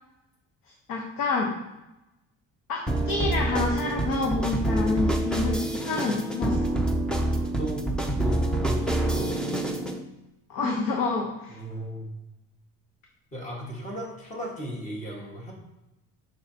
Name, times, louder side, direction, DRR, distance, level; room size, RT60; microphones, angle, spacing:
voice 1, 0.9-1.5 2.7-6.6 10.5-11.6, left 3 dB, 80° left, 1 dB, 1.0 m, -28 dB
sound 1, 2.9-10.0, right 1 dB, ahead, 0.4 m, -27 dB
voice 2, 7.3-7.9 8.2-9.3 11.5-12.1 13.3-15.5, equal, 20° left, -3 dB, 1.5 m, -35 dB
6.6 x 5.9 x 2.8 m, 0.96 s
cardioid pair, 170°, 34 cm